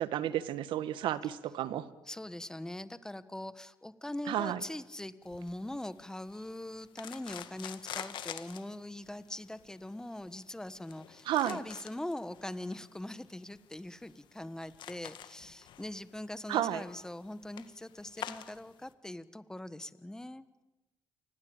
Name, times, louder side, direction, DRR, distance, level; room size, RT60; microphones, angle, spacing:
voice 1, 0.0-1.9 4.3-4.6 11.2-11.6 16.5-16.8, right 12 dB, 75° right, 14 dB, 1.5 m, -32 dB
voice 2, 2.1-20.4, left 1 dB, 5° left, 14 dB, 1.4 m, -42 dB
sound 1, 5.2-18.9, left 10 dB, 65° left, 1.9 m, -48 dB
28.5 x 20.5 x 8.9 m, 1.0 s
cardioid pair, 95°, 8 cm